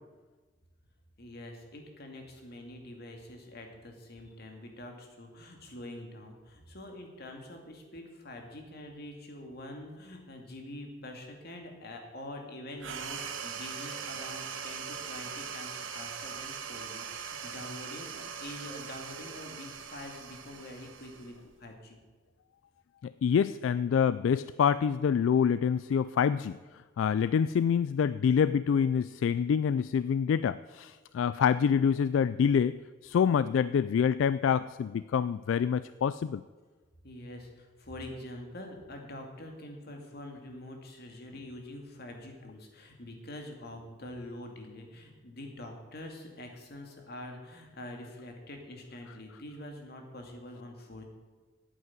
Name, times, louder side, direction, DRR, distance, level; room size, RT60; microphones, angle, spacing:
voice 1, 1.2-22.0 37.0-51.0, left 1 dB, 55° left, 3 dB, 2.3 m, -45 dB
sound 1, 12.8-21.7, right 6 dB, 85° right, 1.2 m, -41 dB
voice 2, 23.0-26.6 27.0-36.4, left 7 dB, 80° left, 16 dB, 0.3 m, -26 dB
9.5 x 8.3 x 8.8 m, 1.3 s
head